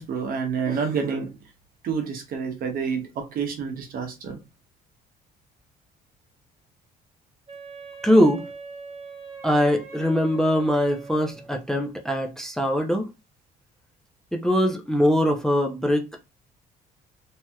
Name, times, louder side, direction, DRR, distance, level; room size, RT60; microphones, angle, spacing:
voice 1, 0.0-1.3 1.8-4.4, right 6 dB, 60° right, 0.9 m, -28 dB
Wind instrument woodwind instrument, 7.5-11.6, right 4 dB, 35° right, 1.0 m, -42 dB
voice 2, 8.0-8.4 9.4-13.1 14.3-16.1, equal, 5° left, 0.6 m, -22 dB
3.3 x 2.7 x 2.3 m
cardioid pair, 110°, 17 cm